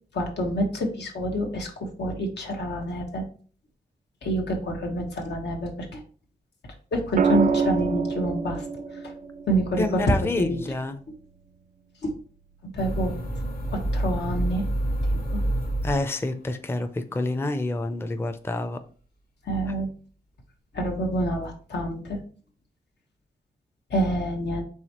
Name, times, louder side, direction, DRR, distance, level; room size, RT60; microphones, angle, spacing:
voice 1, 0.1-3.2 4.2-6.0 6.9-9.1 9.5-10.6 11.1-11.2 12.0-12.1 12.6-13.1 13.7-14.7 15.3-15.4 19.5-19.9 20.7-22.2 23.9-24.6, right 1 dB, 90° left, 2 dB, 1.1 m, -27 dB
sound 1, 7.2-11.3 13.0-13.4, right 5 dB, 50° right, 0.4 m, -27 dB
voice 2, 9.8-11.0 15.8-18.8, left 2 dB, 15° left, 8 dB, 0.4 m, -28 dB
sound 2, 12.8-16.5, right 1 dB, 55° left, 1.0 m, -28 dB
4.8 x 3.5 x 2.9 m, 0.41 s
wide cardioid pair, 90°, 17 cm